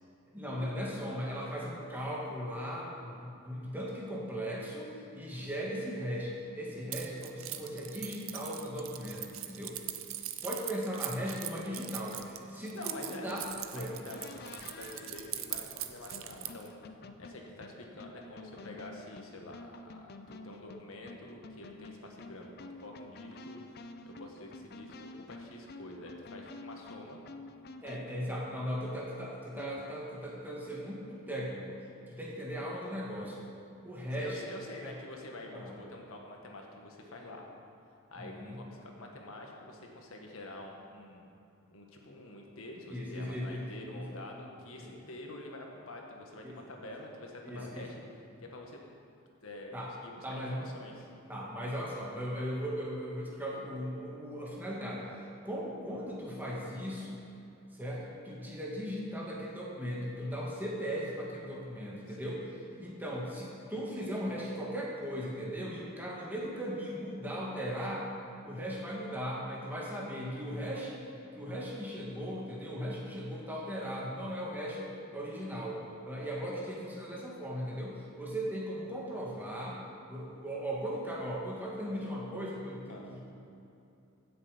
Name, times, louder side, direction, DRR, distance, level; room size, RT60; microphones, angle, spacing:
voice 1, 0.3-9.8 10.4-14.0 27.8-33.5 33.8-34.5 34.8-34.9 35.5-35.8 38.2-38.5 42.9-43.6 43.9-44.1 44.8-44.9 46.4-46.6 47.5-47.9 49.7-49.9 50.2-50.6 51.3-55.0 55.4-57.2 57.7-68.1 68.4-71.0 71.3-79.8 80.1-83.3, equal, 10° right, -4 dB, 1.8 m, -38 dB
Keys jangling, 6.9-16.7, right 13 dB, 65° right, 0.7 m, -41 dB
voice 2, 10.5-10.8 12.7-13.4 13.7-16.7 17.2-23.6 24.0-27.2 34.2-37.5 38.1-41.3 41.7-48.0 48.4-48.8 49.4-51.1 62.1-62.4 82.9-83.1, left 2 dB, 75° left, 1 dB, 1.5 m, -47 dB
sound 1, 14.1-28.3 29.6-30.2, left 2 dB, 45° left, 0.5 m, -49 dB
16.0 x 6.8 x 5.1 m, 2.7 s
head